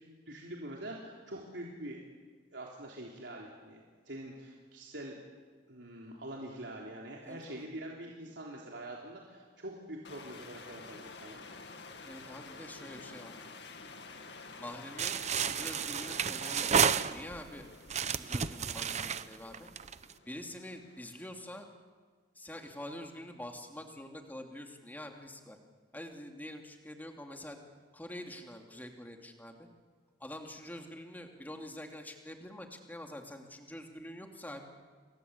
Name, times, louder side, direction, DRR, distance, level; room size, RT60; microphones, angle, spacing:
voice 1, 0.0-2.0 2.5-5.2 5.7-11.4, right 1 dB, 85° right, -2 dB, 3.5 m, -45 dB
voice 2, 7.2-7.7 12.0-13.5 14.6-16.7 17.1-17.7 18.1-19.7 20.3-21.7 22.3-25.6 25.9-27.6 27.9-29.7 30.2-34.7, left 1 dB, 10° left, 3 dB, 2.8 m, -46 dB
sound 1, 10.0-21.1, left 3 dB, 70° left, 2.4 m, -50 dB
sound 2, 15.0-17.5 17.9-20.1, right 7 dB, 40° right, 0.8 m, -31 dB
29.0 x 22.0 x 8.3 m, 1.5 s
head